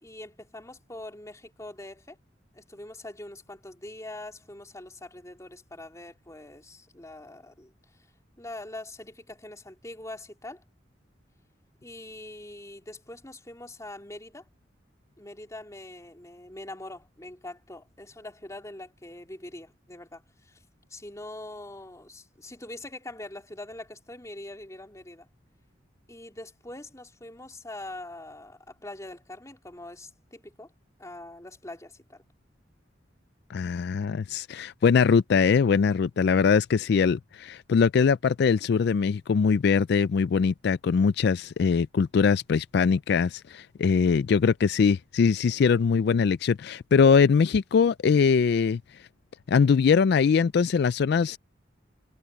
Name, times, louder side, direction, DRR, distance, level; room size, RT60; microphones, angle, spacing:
voice 1, 0.0-2.2 2.5-7.7 8.4-10.6 11.8-14.5 15.2-20.6 20.9-25.3 26.1-30.7 31.0-32.2, left 1 dB, 15° left, 3.3 m, -43 dB
voice 2, 33.5-48.8 49.5-51.4, left 6 dB, 60° left, 0.3 m, -22 dB
head